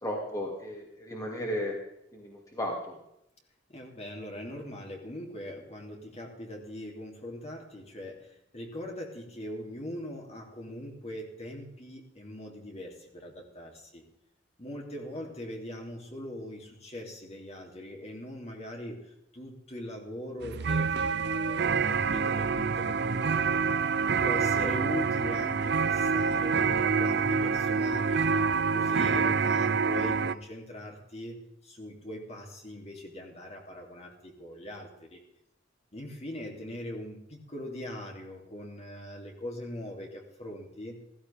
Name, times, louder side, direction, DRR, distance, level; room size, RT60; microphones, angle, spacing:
voice 1, 0.0-1.8 2.1-3.0, equal, 20° left, -1 dB, 2.5 m, -34 dB
voice 2, 3.7-14.0 14.6-23.6 24.2-28.2 28.7-31.4 31.6-35.2 35.9-41.0, left 1 dB, 35° left, 1 dB, 3.1 m, -41 dB
sound 1, 20.4-30.3, right 5 dB, 65° right, 0.6 m, -27 dB
15.5 x 15.5 x 3.5 m, 0.80 s
head